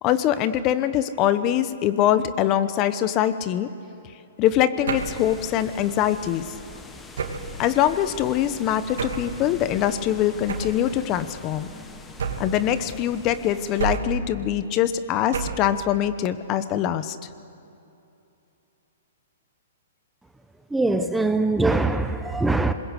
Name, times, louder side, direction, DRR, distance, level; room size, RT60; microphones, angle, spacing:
voice 1, 0.0-3.7 4.4-6.4 7.6-11.7 12.4-17.2, left 11 dB, 30° left, 1.0 m, -23 dB
sound 1, 4.9-14.0, left 3 dB, 10° left, 1.5 m, -43 dB
sound 2, 4.9-5.3 7.2-7.6 9.0-9.4 10.5-10.9 12.2-12.6 13.8-14.3 15.3-15.7, right 6 dB, 80° right, 2.9 m, -29 dB
voice 2, 20.7-22.7, right 2 dB, 5° right, 0.8 m, -22 dB
27.0 x 21.5 x 8.4 m
hypercardioid pair, 155°, 0 cm